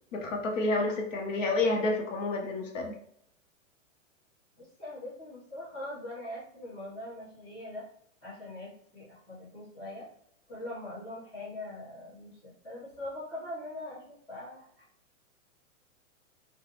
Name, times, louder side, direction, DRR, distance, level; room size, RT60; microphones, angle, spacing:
voice 1, 0.1-2.9, left 2 dB, 70° left, 2 dB, 0.7 m, -29 dB
voice 2, 4.6-7.8 8.2-10.1 10.5-14.7, left 1 dB, 15° left, -10 dB, 1.0 m, -42 dB
2.4 x 2.1 x 2.9 m, 0.69 s
hypercardioid pair, 170°, 41 cm